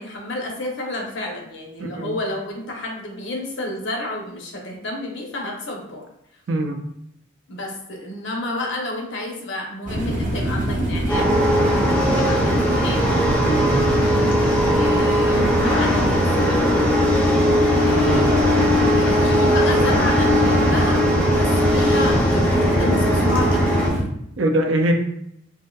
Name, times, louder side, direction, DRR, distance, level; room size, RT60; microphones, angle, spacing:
voice 1, 0.0-6.0 7.5-11.3 11.6-13.1 14.8-16.6 17.8-18.6 18.9-21.0 21.3-23.8, left 2 dB, 60° left, 0 dB, 0.7 m, -30 dB
voice 2, 6.5-6.8 13.5-13.8 17.7-18.3 24.4-24.9, right 1 dB, 65° right, 4 dB, 0.4 m, -22 dB
sound 1, 9.9-24.0, right 1 dB, 40° right, 0.7 m, -23 dB
sound 2, 11.1-23.9, equal, 5° left, 0.4 m, -20 dB
sound 3, 15.1-16.6 17.0-21.1 21.4-21.5, left 1 dB, 80° left, 1.1 m, -32 dB
3.6 x 2.6 x 2.2 m, 0.76 s
head